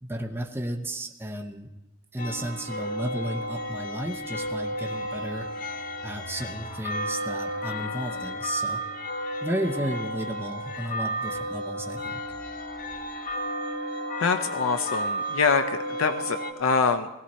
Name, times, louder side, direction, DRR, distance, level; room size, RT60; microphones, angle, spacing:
voice 1, 0.0-1.7 2.1-5.5 6.0-8.8 9.4-12.2, right 1 dB, 10° right, 4 dB, 0.7 m, -33 dB
sound 1, 2.2-16.5, equal, 40° left, 1.1 m, -33 dB
voice 2, 14.2-17.1, left 5 dB, 70° left, 9 dB, 0.6 m, -25 dB
17.5 x 16.0 x 4.2 m, 0.97 s
head